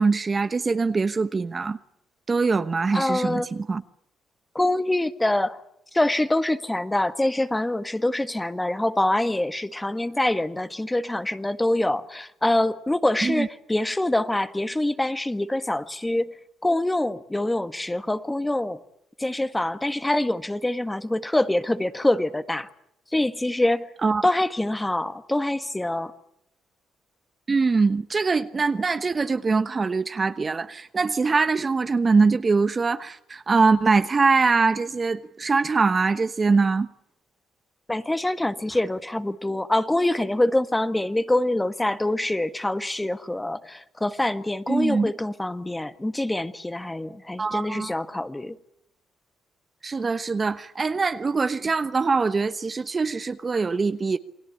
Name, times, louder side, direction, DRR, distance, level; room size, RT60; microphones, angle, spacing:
voice 1, 0.0-1.8 2.3-3.8 13.2-13.5 24.0-24.3 27.5-36.9 44.7-45.1 47.4-47.9 49.8-54.2, right 4 dB, 30° right, 1.1 m, -23 dB
voice 2, 2.9-3.5 4.5-5.6 5.9-16.3 16.6-18.8 19.2-22.7 23.1-23.9 24.2-26.1 37.9-48.5, left 1 dB, 10° left, 1.6 m, -25 dB
29.0 x 20.5 x 8.6 m
cardioid pair, 90°, 0 cm